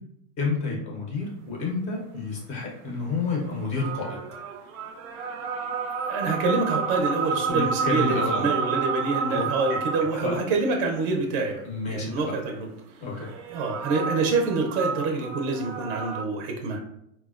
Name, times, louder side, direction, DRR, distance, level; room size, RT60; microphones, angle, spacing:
voice 1, 0.4-4.2 7.5-8.7 9.3-9.8 10.2-10.4 11.6-12.3 13.0-13.3, left 3 dB, 20° left, -1 dB, 0.4 m, -30 dB
sound 1, 3.5-10.3 13.1-16.2, right 5 dB, 90° right, 0.6 m, -30 dB
voice 2, 6.1-12.7 13.5-16.8, right 3 dB, 40° right, 2 dB, 0.5 m, -26 dB
4.2 x 2.1 x 2.3 m, 0.77 s
supercardioid pair, 145°, 42 cm